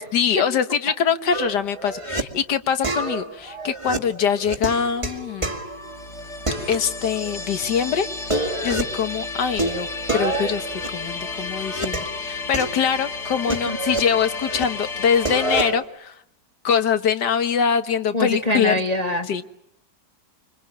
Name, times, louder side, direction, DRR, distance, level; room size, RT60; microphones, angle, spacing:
voice 1, 0.1-5.5 6.7-16.2 16.6-18.7 19.3-19.4, left 7 dB, 75° left, 11 dB, 1.9 m, -23 dB
sound 1, 1.3-2.2 2.8-6.1 6.5-7.4 7.6-7.7 8.1-9.0 9.6-12.2 12.5-14.6 14.9-15.8, right 2 dB, 15° right, 2.2 m, -28 dB
sound 2, 5.6-15.7, left 3 dB, 45° left, 1.8 m, -32 dB
voice 2, 18.1-19.3, left 1 dB, 25° left, 3 dB, 1.6 m, -23 dB
26.0 x 24.0 x 8.8 m, 0.75 s
omnidirectional pair, 1.9 m